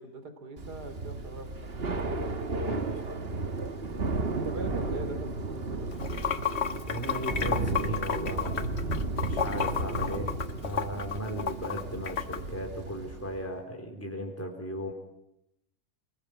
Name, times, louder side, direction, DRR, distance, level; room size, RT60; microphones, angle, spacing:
voice 1, 0.0-2.1 4.3-6.6, right 3 dB, 80° right, 9 dB, 3.7 m, -43 dB
Thunder / Rain, 0.6-13.5, right 3 dB, 40° right, 1.6 m, -34 dB
voice 2, 2.7-3.0 6.9-8.8 9.2-10.4 10.6-14.9, equal, 10° left, 2 dB, 3.9 m, -36 dB
Water / Sink (filling or washing), 5.9-12.4, left 7 dB, 45° left, 1.4 m, -32 dB
30.0 x 21.0 x 9.1 m, 0.83 s
omnidirectional pair, 1.7 m